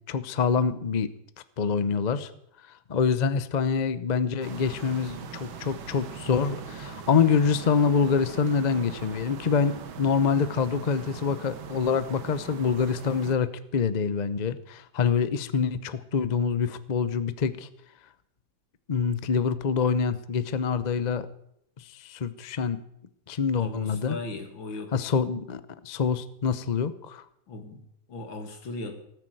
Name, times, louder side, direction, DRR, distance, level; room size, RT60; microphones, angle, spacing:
voice 1, 0.1-1.1 1.6-2.3 2.9-17.7 18.9-21.3 22.0-22.8 23.3-24.2 24.9-27.2, left 6 dB, 60° left, 13 dB, 0.4 m, -26 dB
sound 1, 4.4-13.4, right 7 dB, 90° right, 2.1 m, -41 dB
voice 2, 23.6-24.9 27.5-27.8 28.1-28.9, left 2 dB, 80° left, 5 dB, 3.1 m, -37 dB
18.0 x 9.6 x 7.8 m, 0.74 s
omnidirectional pair, 2.1 m